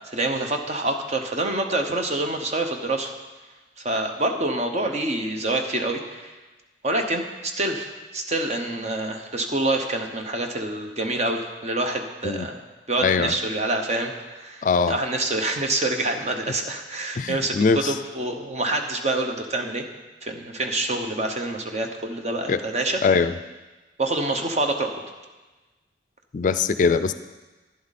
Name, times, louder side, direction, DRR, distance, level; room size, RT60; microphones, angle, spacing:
voice 1, 0.0-3.1 3.8-6.3 6.8-12.6 12.9-19.8 20.2-23.0 24.0-25.0, right 2 dB, 40° right, 4 dB, 1.0 m, -26 dB
voice 2, 13.0-13.3 14.6-15.0 17.2-17.9 22.5-22.6 23.0-23.3 26.3-27.1, left 5 dB, 45° left, 12 dB, 0.4 m, -21 dB
11.0 x 11.0 x 4.1 m, 1.2 s
head